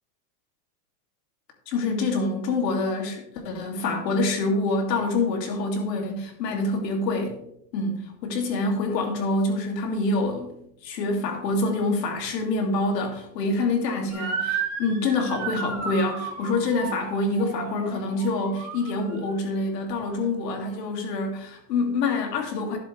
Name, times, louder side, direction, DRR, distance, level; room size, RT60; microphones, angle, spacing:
voice 1, 1.7-7.3 7.7-10.5 10.8-22.8, left 2 dB, 85° left, 3 dB, 2.8 m, -26 dB
Motor vehicle (road) / Siren, 14.1-19.3, right 6 dB, 30° right, 2.8 m, -33 dB
12.0 x 7.7 x 3.4 m, 0.75 s
supercardioid pair, 145°, 48 cm